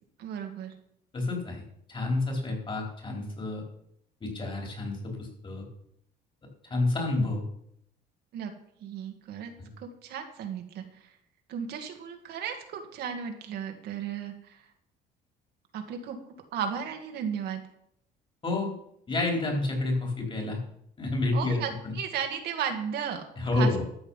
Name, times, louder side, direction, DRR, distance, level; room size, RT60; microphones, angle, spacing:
voice 1, 0.2-0.7 8.3-8.5 8.8-9.5 9.8-11.1 11.5-14.6 15.7-16.2 16.5-17.6 21.3-23.2 23.6-23.7, right 8 dB, 75° right, 5 dB, 2.0 m, -35 dB
voice 2, 1.1-1.6 1.9-3.6 4.2-5.7 6.7-7.4 9.6-9.7 18.4-18.7 19.1-20.6 21.0-21.9 23.4-23.8, left 2 dB, 30° left, 1 dB, 4.2 m, -29 dB
13.0 x 7.3 x 5.7 m, 0.72 s
cardioid pair, 110°, 17 cm